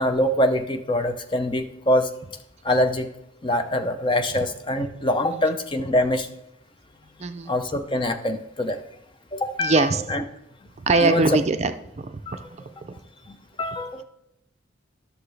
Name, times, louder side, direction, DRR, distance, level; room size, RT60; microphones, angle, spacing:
voice 1, 0.0-2.1 2.6-3.1 3.4-6.3 7.5-8.8 9.3-10.2 10.9-11.4 12.3-12.4 13.3-14.0, left 1 dB, 25° left, 7 dB, 0.5 m, -24 dB
voice 2, 7.2-7.5 9.6-10.0 10.8-12.4 12.8-13.0, right 3 dB, 35° right, 8 dB, 0.4 m, -22 dB
11.5 x 6.7 x 3.3 m, 0.82 s
head